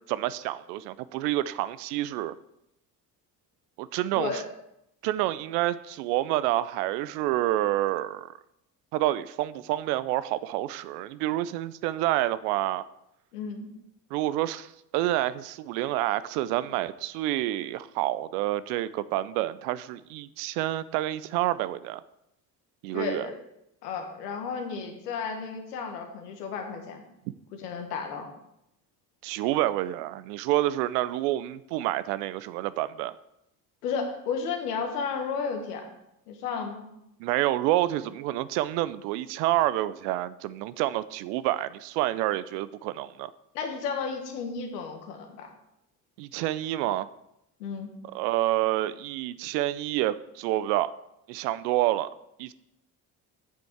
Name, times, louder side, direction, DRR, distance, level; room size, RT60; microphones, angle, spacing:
voice 1, 0.1-2.3 3.8-4.4 5.0-8.3 8.9-12.8 14.1-22.0 22.8-23.3 29.2-33.2 37.2-43.3 46.2-47.1 48.1-50.9 51.3-52.1 52.4-52.5, right 15 dB, 80° right, 16 dB, 0.6 m, -28 dB
voice 2, 13.3-13.7 22.9-23.3 23.8-27.0 27.5-28.3 33.8-35.8 36.3-36.8 43.5-45.5 47.6-47.9, left 5 dB, 90° left, 3 dB, 1.5 m, -33 dB
8.4 x 7.0 x 4.6 m, 0.82 s
hypercardioid pair, 65°, 46 cm